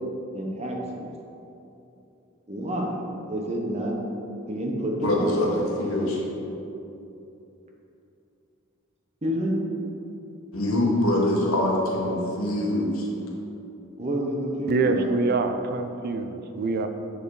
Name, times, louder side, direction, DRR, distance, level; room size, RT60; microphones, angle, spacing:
voice 1, 0.3-1.0 2.5-3.9 4.5-5.3 9.2-9.5 14.0-15.1, equal, 30° right, 0 dB, 0.9 m, -28 dB
voice 2, 5.0-6.2 10.5-13.1, left 1 dB, 75° left, -2 dB, 1.4 m, -24 dB
voice 3, 14.7-16.9, right 3 dB, 45° right, 7 dB, 0.4 m, -25 dB
7.7 x 4.7 x 4.8 m, 2.9 s
head